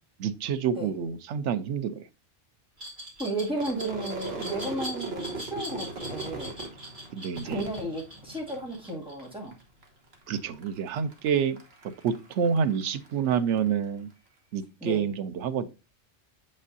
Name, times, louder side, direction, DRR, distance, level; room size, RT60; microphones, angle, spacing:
voice 1, 0.2-2.0 7.1-7.6 10.3-11.6 12.0-14.1 14.5-15.7, right 7 dB, 90° right, 1.0 m, -28 dB
Glass, 2.8-9.6, equal, 45° right, 2.6 m, -41 dB
voice 2, 3.2-6.5 7.4-9.6 14.8-15.1, right 1 dB, 5° right, 2.1 m, -33 dB
Crowd / Fireworks, 3.5-8.9 9.2-9.8 10.1-13.7, right 3 dB, 60° right, 1.5 m, -39 dB
7.4 x 5.3 x 2.6 m
omnidirectional pair, 1.2 m